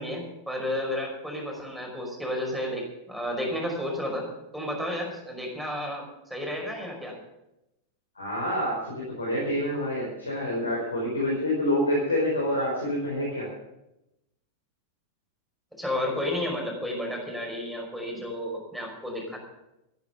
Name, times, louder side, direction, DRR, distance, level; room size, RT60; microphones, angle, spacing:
voice 1, 0.0-4.3 4.5-7.2 15.8-19.4, left 1 dB, ahead, 0 dB, 5.3 m, -32 dB
voice 2, 8.2-13.5, left 1 dB, 80° left, -3 dB, 4.9 m, -27 dB
14.5 x 10.5 x 6.8 m, 0.90 s
figure-of-eight pair, 90°, 0 cm